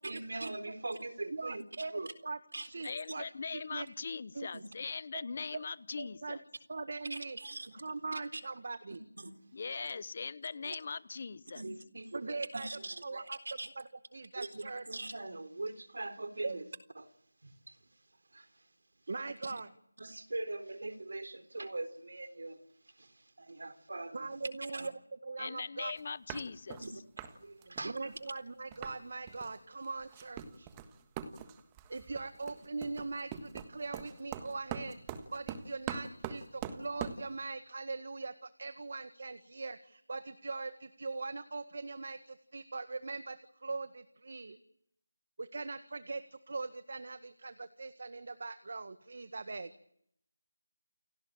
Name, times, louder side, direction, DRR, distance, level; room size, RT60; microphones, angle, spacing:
voice 1, 0.0-2.1 2.5-2.7 4.5-4.6 7.1-7.7 8.1-8.4 9.2-9.3 9.8-9.9 10.6-10.8 11.5-13.7 14.3-16.7 17.0-17.1 17.4-17.8 18.3-18.7 19.4-19.5 20.0-22.6 22.8-24.3 24.6-24.9 26.8-26.9 27.3-28.1, right 2 dB, 70° right, 10 dB, 4.0 m, -42 dB
voice 2, 1.3-3.3 3.5-3.9 4.4-4.5 5.1-5.2 6.0-6.4 6.7-7.4 7.7-9.0 12.1-12.7 13.0-13.4 13.8-14.8 16.4-16.6 19.1-19.7 24.1-24.9 25.2-25.9 27.8-30.7 31.9-35.0 35.3-44.6 45.4-49.7, right 3 dB, 55° right, 11 dB, 1.7 m, -41 dB
voice 3, 2.8-6.4 9.5-11.6 25.4-26.8, left 5 dB, 40° left, 19 dB, 1.0 m, -40 dB
sound 1, 26.0-26.1 26.3-26.9 27.2-27.4 27.6-29.0 29.3-29.5 29.8-37.2, right 8 dB, 15° right, 1.5 m, -43 dB
29.5 x 18.5 x 8.9 m, 0.72 s
figure-of-eight pair, 170°, 0 cm